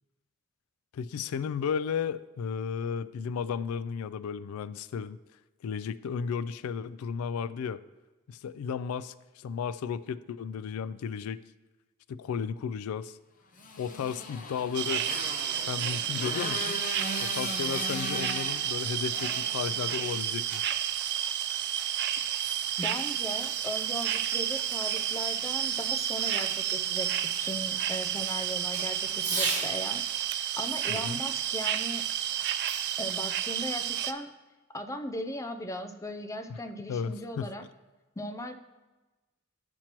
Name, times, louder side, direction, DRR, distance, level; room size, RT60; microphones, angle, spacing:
voice 1, 0.9-5.2 5.6-7.8 8.3-11.4 12.1-13.2 13.8-15.0 15.5-16.8 17.2-20.6 30.9-31.2 36.5-36.6 36.9-37.5, left 6 dB, 85° left, 15 dB, 0.3 m, -34 dB
Motorcycle, 13.6-20.3, left 2 dB, 40° left, 0.8 m, -38 dB
sound 1, 14.7-34.1, right 10 dB, 55° right, 0.3 m, -31 dB
Fireworks, 22.5-29.8 30.9-32.6, right 3 dB, 35° right, 0.9 m, -41 dB
voice 2, 22.8-27.1 27.4-30.0 30.3-32.0 33.0-34.3 34.7-37.6 38.2-38.5, left 1 dB, 15° left, 7 dB, 0.4 m, -38 dB
12.0 x 4.4 x 2.9 m, 1.2 s
head